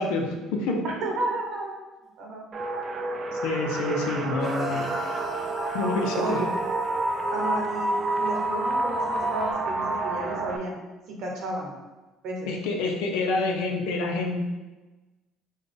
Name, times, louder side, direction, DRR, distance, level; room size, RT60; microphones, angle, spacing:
voice 1, 0.0-0.8 3.3-5.0 5.7-6.4 12.5-14.4, left 3 dB, 85° left, 2 dB, 0.6 m, -27 dB
voice 2, 0.8-1.7 2.2-2.5 6.1-6.5 7.3-10.8 11.1-11.7 12.2-12.5, right 2 dB, 65° right, 0 dB, 0.8 m, -32 dB
sound 1, 2.5-10.6, right 2 dB, 40° right, 0.4 m, -29 dB
sound 2, 4.4-9.5, equal, 25° left, 1.0 m, -38 dB
3.9 x 2.3 x 3.4 m, 1.2 s
cardioid pair, 100°, 0 cm